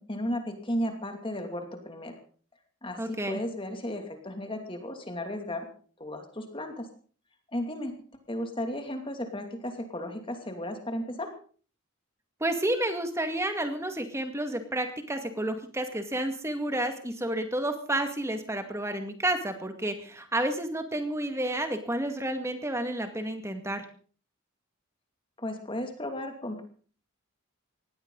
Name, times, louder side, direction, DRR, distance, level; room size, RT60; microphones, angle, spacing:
voice 1, 0.1-2.1 2.8-5.7 6.0-6.9 7.5-7.9 8.3-11.3 25.4-26.6, left 1 dB, 25° left, 5 dB, 2.7 m, -34 dB
voice 2, 3.0-3.4 12.4-23.8, right 1 dB, 15° right, 6 dB, 2.1 m, -30 dB
19.5 x 16.0 x 4.0 m, 0.43 s
head